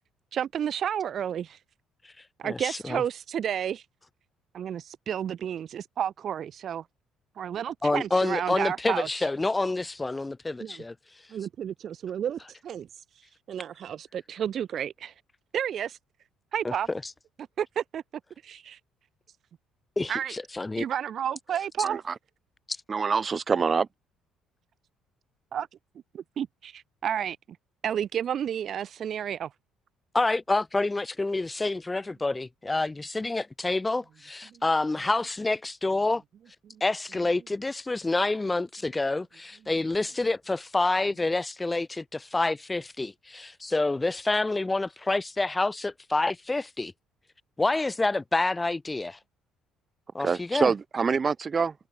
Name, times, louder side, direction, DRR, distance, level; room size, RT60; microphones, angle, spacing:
voice 1, 0.3-1.6 2.4-3.8 4.5-6.8 7.4-9.3 10.6-10.8 11.3-12.9 13.1-15.1 15.5-16.0 16.5-16.9 17.6-18.0 18.4-18.8 20.1-20.3 20.8-22.0 25.5-25.7 26.1-27.4 27.8-29.5 36.6-36.7, right 9 dB, 55° right, 1.3 m, -31 dB
voice 2, 2.4-3.0 7.8-10.9 16.6-17.0 20.0-20.8 30.1-36.2 36.8-46.9 47.6-49.2 50.1-50.7, left 2 dB, 20° left, 6.3 m, -28 dB
voice 3, 21.8-22.1 22.9-23.9 50.2-51.8, right 5 dB, 35° right, 6.9 m, -25 dB
hypercardioid pair, 50°, 0 cm